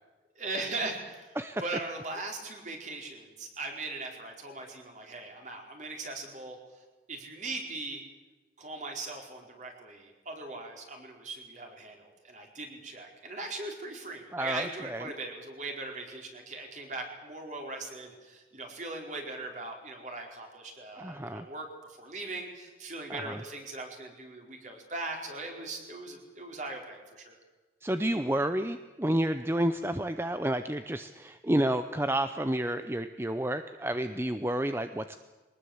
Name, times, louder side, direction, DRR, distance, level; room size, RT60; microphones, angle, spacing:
voice 1, 0.4-6.6 7.1-8.0 8.6-21.6 22.0-27.4, right 2 dB, 40° right, 2 dB, 4.6 m, -39 dB
voice 2, 14.3-15.0 20.9-21.4 23.1-23.4 27.8-35.2, right 1 dB, 15° right, 9 dB, 0.6 m, -30 dB
23.0 x 19.5 x 8.1 m, 1.2 s
head